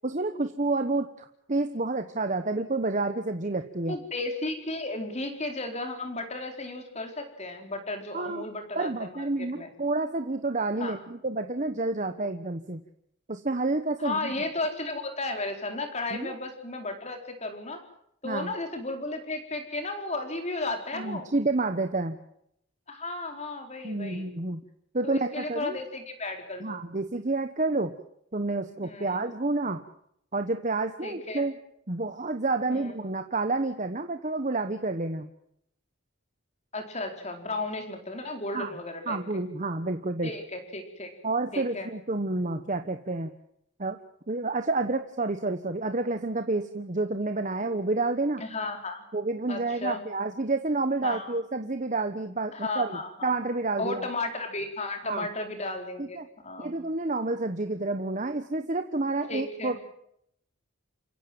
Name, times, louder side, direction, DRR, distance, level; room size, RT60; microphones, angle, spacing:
voice 1, 0.0-4.0 8.1-8.4 8.7-12.8 13.3-14.3 16.1-16.3 18.2-18.5 20.9-22.2 23.8-24.6 24.9-25.8 26.6-27.9 28.3-29.8 30.3-31.6 31.9-35.3 38.5-38.7 39.1-40.3 41.2-43.3 43.8-44.0 44.3-48.4 49.1-54.1 55.0-55.3 56.0-56.3 56.6-59.8, right 2 dB, 35° right, 7 dB, 1.2 m, -29 dB
voice 2, 3.9-9.7 10.8-11.0 14.0-17.8 18.2-21.3 22.9-24.3 25.0-26.8 28.8-29.2 31.0-31.5 32.7-32.9 36.7-39.2 40.2-41.1 41.5-41.9 48.4-49.0 49.5-50.0 51.0-51.4 52.5-53.3 53.8-56.2 56.4-56.8 59.3-59.8, left 2 dB, 30° left, 5 dB, 4.4 m, -34 dB
28.5 x 16.0 x 7.9 m, 0.74 s
head